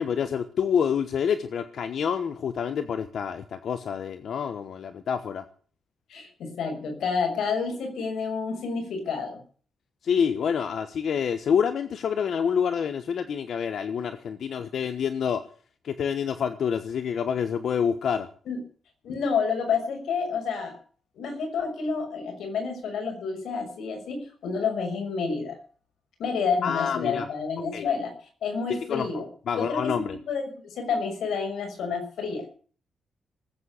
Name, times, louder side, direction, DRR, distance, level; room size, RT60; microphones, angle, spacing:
voice 1, 0.0-5.4 10.0-15.5 15.8-18.3 26.6-27.3 27.7-27.9 28.7-29.1 29.5-30.2, left 7 dB, 55° left, 10 dB, 1.2 m, -27 dB
voice 2, 6.1-9.4 18.5-18.6 19.0-20.8 21.2-25.6 26.2-28.1 28.4-29.2 29.5-32.4, left 5 dB, 80° left, 3 dB, 6.3 m, -29 dB
19.5 x 8.8 x 8.2 m, 0.43 s
wide cardioid pair, 165°, 0 cm